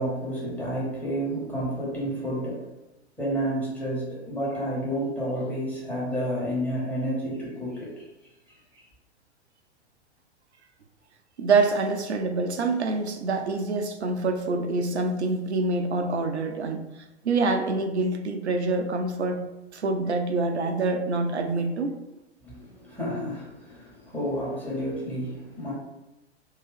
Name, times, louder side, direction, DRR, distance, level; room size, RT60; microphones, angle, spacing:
voice 1, 0.0-2.7 3.2-8.0 8.5-8.8 22.4-25.7, equal, 5° left, -6 dB, 1.2 m, -30 dB
voice 2, 11.4-16.8 17.2-19.5 19.7-22.0, right 3 dB, 80° right, 6 dB, 0.6 m, -26 dB
2.9 x 2.7 x 3.2 m, 0.96 s
figure-of-eight pair, 100°, 33 cm